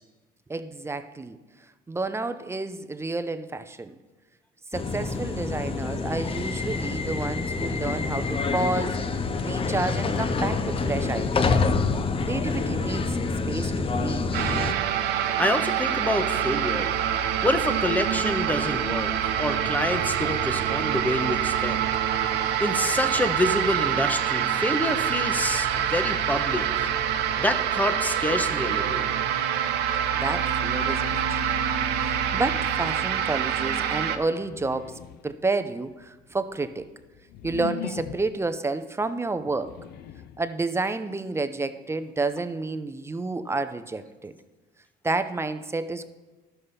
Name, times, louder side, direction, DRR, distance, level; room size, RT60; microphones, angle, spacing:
voice 1, 0.5-1.4 1.9-3.9 4.7-9.0 9.4-11.6 12.2-13.2 13.5-14.3 30.2-31.4 32.0-36.9 37.4-39.8 40.4-44.3 45.0-46.1, right 3 dB, 15° right, 11 dB, 0.6 m, -30 dB
sound 1, 4.7-14.7, left 4 dB, 35° left, 0.7 m, -27 dB
sound 2, 14.3-34.2, right 9 dB, 80° right, 0.9 m, -26 dB
voice 2, 15.4-16.9 17.4-21.8 22.6-26.9 27.4-29.1, left 1 dB, 10° left, 8 dB, 0.9 m, -27 dB
sound 3, 34.3-35.4 36.1-38.5 39.4-40.5, left 11 dB, 70° left, 0.5 m, -39 dB
12.5 x 6.7 x 5.6 m, 1.2 s
cardioid pair, 110°, 17 cm